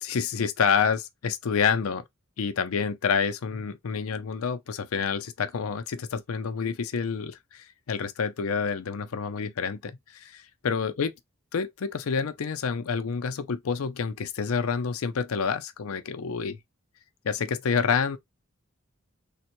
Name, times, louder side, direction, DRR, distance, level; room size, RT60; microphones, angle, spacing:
voice 1, 0.0-2.0 2.4-11.1 11.5-16.6 17.2-18.2, left 6 dB, 75° left, 0.5 m, -28 dB
3.5 x 2.2 x 2.9 m
head